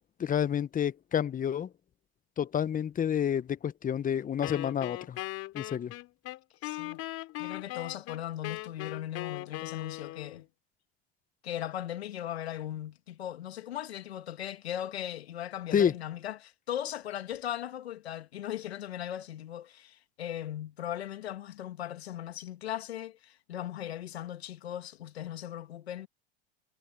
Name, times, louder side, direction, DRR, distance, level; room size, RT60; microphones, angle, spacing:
voice 1, 0.2-1.7 2.4-5.2 5.5-5.9 15.7-15.9, left 9 dB, 25° left, 1.2 m, -29 dB
Wind instrument woodwind instrument, 4.4-10.4, left 17 dB, 50° left, 4.0 m, -39 dB
voice 2, 6.6-7.0 7.4-10.5 11.4-26.1, left 11 dB, 85° left, 2.2 m, -38 dB
hypercardioid pair, 95°, 31 cm